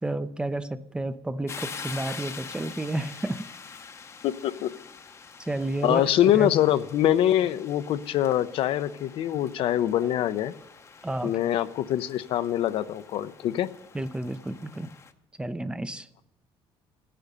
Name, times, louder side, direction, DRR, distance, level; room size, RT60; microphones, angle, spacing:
voice 1, 0.0-3.4 5.4-6.5 11.0-11.4 13.9-14.9 15.4-16.1, right 2 dB, 10° right, 12 dB, 0.5 m, -31 dB
sound 1, 1.5-15.1, left 5 dB, 30° left, 0.7 m, -45 dB
voice 2, 4.2-4.7 5.8-10.5 11.2-13.7, left 11 dB, 65° left, 13 dB, 0.6 m, -24 dB
sound 2, 9.6-10.2, right 6 dB, 55° right, 2.4 m, -47 dB
14.5 x 10.0 x 6.7 m, 0.89 s
cardioid pair, 140°, 10 cm